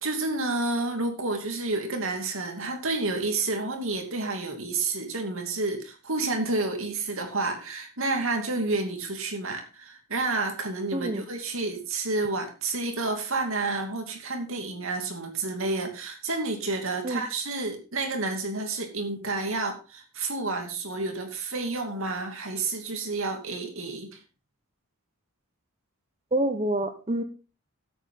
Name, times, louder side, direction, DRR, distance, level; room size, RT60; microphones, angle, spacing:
voice 1, 0.0-24.2, right 3 dB, 70° right, 4 dB, 2.7 m, -30 dB
voice 2, 10.9-11.2 17.0-17.2 26.3-27.2, right 1 dB, 30° right, 8 dB, 1.0 m, -27 dB
12.5 x 8.5 x 3.8 m, 0.32 s
head